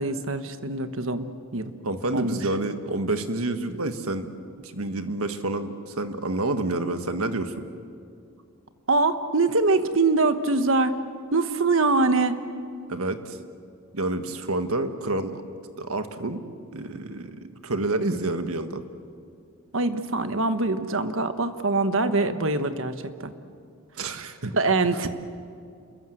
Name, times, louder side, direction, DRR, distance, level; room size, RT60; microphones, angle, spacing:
voice 1, 0.0-1.7 2.1-2.4 8.9-11.0 11.3-12.4 19.7-23.3 24.5-25.1, right 3 dB, 65° right, 10 dB, 1.3 m, -23 dB
voice 2, 1.8-4.3 4.6-7.6 12.9-13.4 13.9-15.4 15.8-16.4 16.7-17.4 17.6-18.8 24.0-24.5, right 2 dB, 85° right, 8 dB, 1.6 m, -28 dB
28.5 x 22.0 x 7.8 m, 2.4 s
head